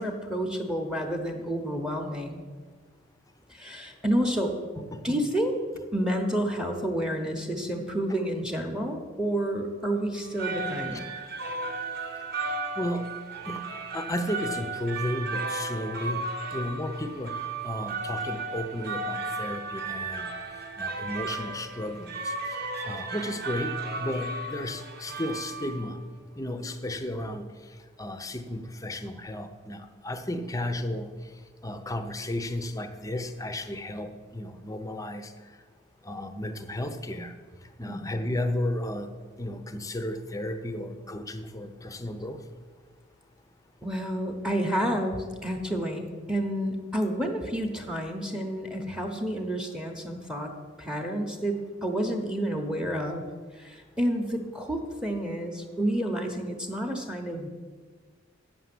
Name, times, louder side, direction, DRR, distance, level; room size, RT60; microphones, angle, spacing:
voice 1, 0.0-2.4 3.5-4.5 5.0-5.5 5.9-11.0 37.9-38.1 43.8-50.5 50.8-53.2 53.5-57.5, right 1 dB, 5° right, 4 dB, 0.9 m, -30 dB
voice 2, 4.8-5.2 10.9-11.1 12.8-13.1 13.4-13.7 13.9-17.4 17.6-20.3 20.8-26.0 26.4-27.5 28.0-31.1 31.6-35.3 36.0-37.3 37.8-39.1 39.4-42.4, left 1 dB, 15° left, 8 dB, 0.7 m, -33 dB
sound 1, 10.2-26.0, right 3 dB, 55° right, 1.0 m, -35 dB
8.9 x 7.0 x 7.7 m, 1.5 s
head